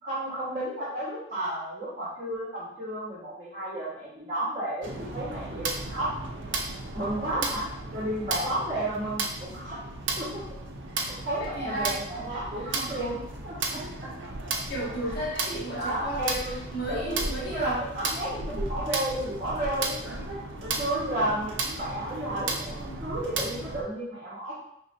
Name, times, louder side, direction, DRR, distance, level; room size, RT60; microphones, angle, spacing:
voice 1, 0.0-6.2 6.9-7.6 7.9-9.9 10.2-10.4 10.9-14.1 15.7-16.5 16.9-24.5, right 1 dB, 35° right, -9 dB, 1.2 m, -32 dB
sound 1, 4.8-23.8, right 3 dB, 75° right, 0.6 m, -34 dB
voice 2, 11.4-12.0 12.3-12.4 12.7-13.0 13.7-14.0 14.7-16.3 16.7-17.8, right 1 dB, 55° left, -5 dB, 1.2 m, -34 dB
5.1 x 3.1 x 2.6 m, 0.73 s
head